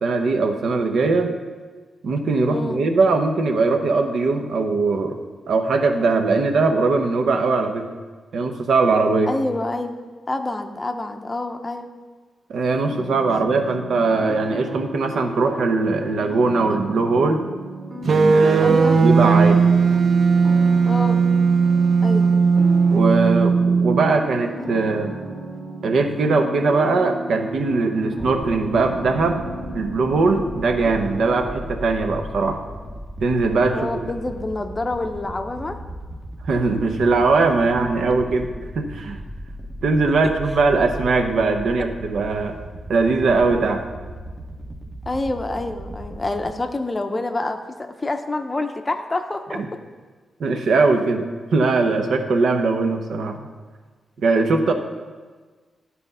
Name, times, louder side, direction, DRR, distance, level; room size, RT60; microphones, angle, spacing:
voice 1, 0.0-1.4 2.0-5.2 5.5-7.9 8.3-9.3 12.5-17.4 18.0-19.6 22.9-25.2 25.8-29.5 29.7-32.6 33.2-34.0 36.4-38.5 38.7-39.2 39.8-42.5 42.9-43.8 50.4-51.3 51.5-53.5 54.2-54.7, right 3 dB, 75° right, 5 dB, 0.8 m, -20 dB
voice 2, 2.5-2.8 9.3-10.0 10.3-11.9 18.6-19.0 20.9-21.2 22.0-22.3 33.7-35.8 45.1-49.6, left 2 dB, 25° left, 6 dB, 0.6 m, -27 dB
sound 1, 12.8-31.6, right 1 dB, 40° right, 1.9 m, -34 dB
sound 2, 18.1-24.1, right 5 dB, 55° right, 0.4 m, -17 dB
sound 3, 28.2-46.5, right 1 dB, 15° right, 0.8 m, -37 dB
11.5 x 4.2 x 5.5 m, 1.4 s
cardioid pair, 110°, 0 cm